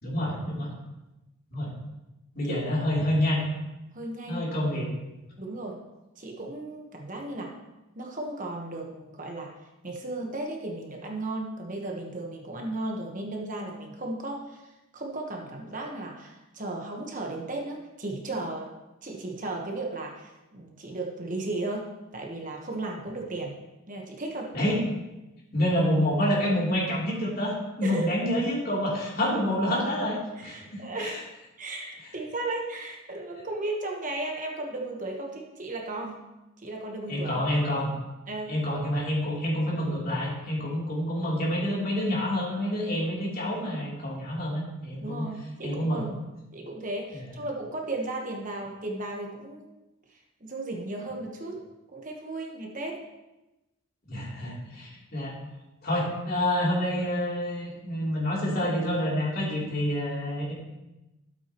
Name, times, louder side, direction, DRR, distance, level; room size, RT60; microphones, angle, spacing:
voice 1, 0.0-0.7 1.5-1.7 2.3-3.4 4.3-5.0 24.5-24.8 25.5-31.2 37.1-37.9 38.5-45.3 45.6-46.0 47.1-47.2 54.1-55.4 55.8-60.5, left 1 dB, 45° left, -5 dB, 3.1 m, -28 dB
voice 2, 3.9-4.4 5.4-5.8 6.2-7.5 8.0-9.5 9.8-18.7 19.0-23.6 23.9-24.5 27.8-28.1 30.4-31.2 31.6-36.2 36.6-37.3 38.3-38.6 45.0-46.2 46.5-49.7 50.4-51.6 51.9-53.0, right 2 dB, 40° right, 1 dB, 1.2 m, -35 dB
12.5 x 8.2 x 3.0 m, 0.99 s
head